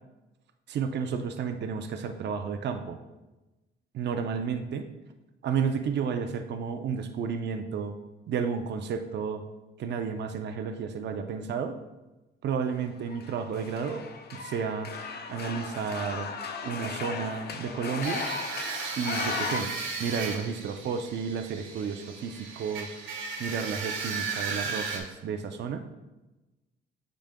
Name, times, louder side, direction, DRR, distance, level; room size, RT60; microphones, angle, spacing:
voice 1, 0.7-3.0 3.9-4.9 5.4-7.9 8.3-9.4 9.8-11.8 12.4-14.0 14.3-14.9 15.3-16.3 16.6-18.3 19.0-19.7 20.0-23.0 23.4-25.8, right 6 dB, 60° right, 6 dB, 0.6 m, -32 dB
sound 1, 13.1-19.6, left 5 dB, 55° left, 0.7 m, -36 dB
sound 2, 18.0-25.0, right 4 dB, 85° right, 1.3 m, -35 dB
8.9 x 5.0 x 2.2 m, 1.1 s
cardioid pair, 90°, 20 cm